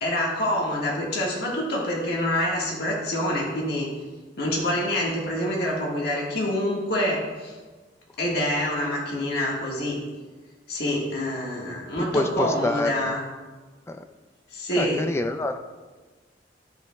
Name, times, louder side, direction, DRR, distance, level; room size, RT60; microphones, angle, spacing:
voice 1, 0.0-3.9 4.4-7.5 8.2-10.0 10.7-13.2 14.5-15.1, left 1 dB, 60° left, -3 dB, 1.6 m, -26 dB
voice 2, 12.1-13.2 13.9-14.0 14.8-15.6, left 2 dB, 15° left, 7 dB, 0.4 m, -26 dB
13.0 x 5.3 x 2.3 m, 1.3 s
head